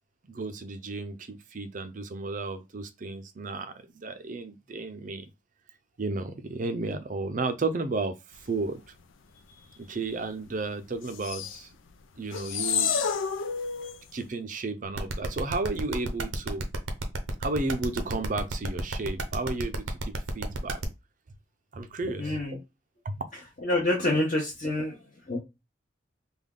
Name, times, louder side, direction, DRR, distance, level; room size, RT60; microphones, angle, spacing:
voice 1, 0.3-5.3 6.0-8.8 9.8-11.7 12.2-12.9 14.1-16.7 17.4-20.8 21.7-22.4 23.0-23.2, right 3 dB, 45° right, 0.5 m, -33 dB
sound 1, 11.1-11.6 12.3-14.0, left 7 dB, 85° left, 0.5 m, -29 dB
sound 2, 14.9-20.8, right 3 dB, 85° right, 0.7 m, -33 dB
voice 2, 22.2-22.6 23.6-24.9 25.3-25.4, left 1 dB, 40° left, 0.9 m, -27 dB
3.5 x 2.3 x 3.7 m
head